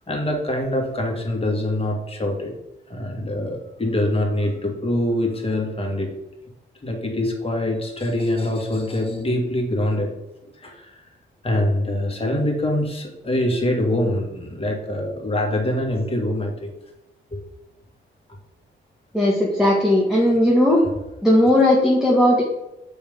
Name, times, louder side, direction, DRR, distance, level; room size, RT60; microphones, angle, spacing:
voice 1, 0.1-2.5 2.9-6.1 6.8-10.1 10.6-11.0 11.4-16.7 17.3-17.4 19.9-20.0, left 1 dB, 25° left, 0 dB, 1.9 m, -24 dB
voice 2, 19.1-20.8 21.2-22.4, left 1 dB, ahead, -3 dB, 1.5 m, -17 dB
7.0 x 5.4 x 3.6 m, 0.93 s
cardioid pair, 90°, 21 cm